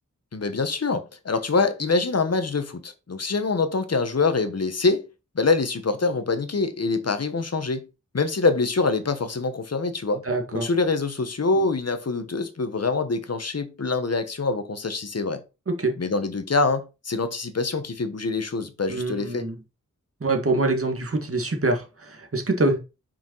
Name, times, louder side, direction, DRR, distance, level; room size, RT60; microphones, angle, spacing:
voice 1, 0.3-5.1 5.3-7.8 8.1-10.2 10.5-15.4 16.0-19.5, left 3 dB, 50° left, 1.2 m, -25 dB
voice 2, 10.3-10.7 15.8-16.0 18.9-19.6 20.2-22.8, right 2 dB, 45° right, 1.9 m, -25 dB
5.8 x 5.1 x 4.6 m
wide cardioid pair, 65°, 32 cm